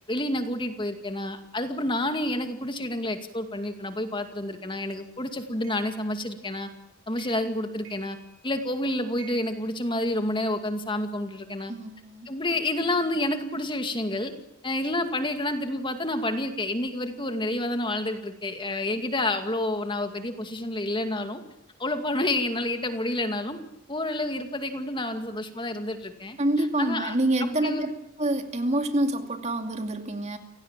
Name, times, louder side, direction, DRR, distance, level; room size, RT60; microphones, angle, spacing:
voice 1, 0.1-6.7 7.1-8.2 8.4-11.7 12.3-14.3 14.6-21.4 21.8-23.6 23.9-26.4 26.8-27.1 27.4-27.9, left 1 dB, 25° left, 7 dB, 2.3 m, -29 dB
sound 1, 4.9-5.0 5.6-6.0 6.5-6.8 7.1-7.5 7.8-8.7 9.2-10.4, right 6 dB, 85° right, 7.3 m, -51 dB
voice 2, 11.7-12.3 26.4-27.9 28.2-30.4, right 1 dB, 35° right, 6 dB, 2.5 m, -26 dB
29.5 x 17.0 x 9.1 m, 0.85 s
head